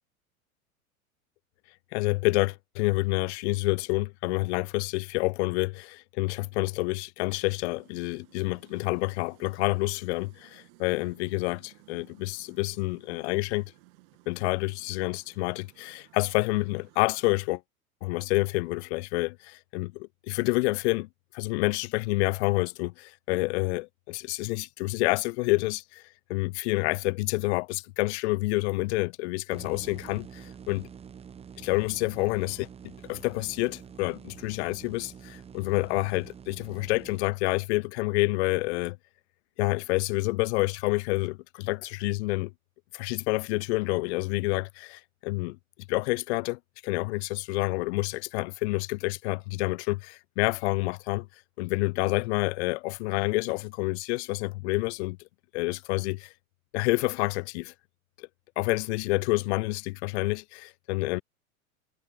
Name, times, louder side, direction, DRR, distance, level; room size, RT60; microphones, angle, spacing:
voice 1, 1.9-13.7 14.3-17.6 18.0-21.1 21.3-26.0 26.3-30.9 31.6-39.0 39.6-42.5 42.9-45.6 45.9-51.3 51.6-55.2 55.5-56.3 56.7-57.7 58.2-58.3 58.6-61.2, left 23 dB, 50° left, 0.8 m, -28 dB
sound 1, 7.2-17.3, right 25 dB, 55° right, 2.3 m, -59 dB
sound 2, 29.5-37.2, right 7 dB, 15° right, 0.8 m, -47 dB
figure-of-eight pair, 85°, 43 cm